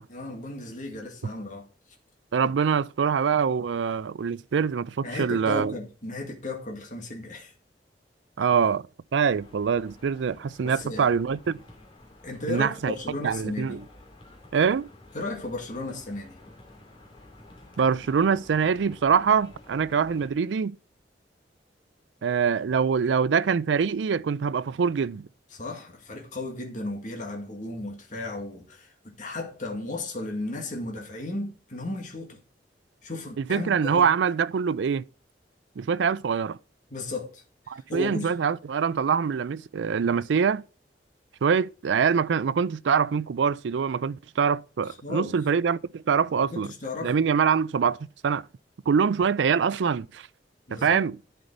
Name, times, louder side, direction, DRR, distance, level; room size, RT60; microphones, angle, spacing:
voice 1, 0.1-1.7 5.0-7.5 10.6-11.1 12.2-13.8 15.1-16.4 25.5-32.4 33.0-34.1 36.9-37.4 37.7-38.3 44.8-45.4 46.5-47.1 50.7-51.0, left 2 dB, 45° left, 2.0 m, -35 dB
voice 2, 2.3-5.7 8.4-8.8 9.1-11.6 12.5-12.9 13.2-13.8 14.5-14.9 17.8-20.7 22.2-25.2 33.5-35.0 35.8-36.6 37.7-40.6 41.4-46.7 47.0-48.0 48.2-48.4 48.9-50.3 50.7-51.2, right 6 dB, 90° right, 0.4 m, -24 dB
sound 1, 9.3-20.3, left 1 dB, 30° left, 2.6 m, -51 dB
11.0 x 5.6 x 3.9 m
head